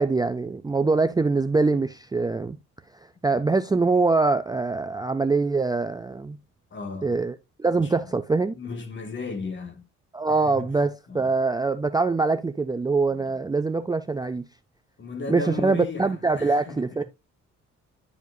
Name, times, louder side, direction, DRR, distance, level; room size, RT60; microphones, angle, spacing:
voice 1, 0.0-2.6 3.2-6.4 7.0-8.6 10.1-14.4 15.3-17.0, right 3 dB, 15° right, 0.4 m, -23 dB
voice 2, 6.7-7.2 7.7-8.1 8.5-9.9 10.3-10.7 11.1-11.3 13.1-13.4 15.0-17.0, left 3 dB, 40° left, 1.9 m, -36 dB
11.0 x 5.0 x 2.7 m
cardioid pair, 90°, 30 cm